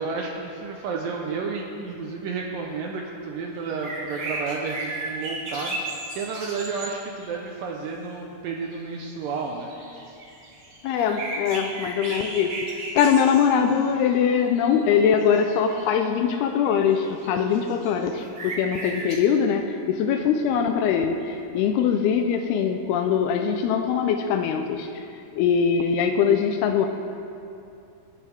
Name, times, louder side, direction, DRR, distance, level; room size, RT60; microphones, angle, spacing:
voice 1, 0.0-9.7 20.4-20.7, right 4 dB, 75° right, 0 dB, 2.1 m, -31 dB
sound 1, 3.6-7.3 8.7-8.8 9.1-9.3 9.6-13.8 14.4-19.1, right 2 dB, 55° right, 3.8 m, -35 dB
voice 2, 10.8-24.9 25.4-26.9, left 7 dB, 85° left, 6 dB, 2.5 m, -22 dB
21.5 x 10.5 x 3.5 m, 2.7 s
omnidirectional pair, 4.8 m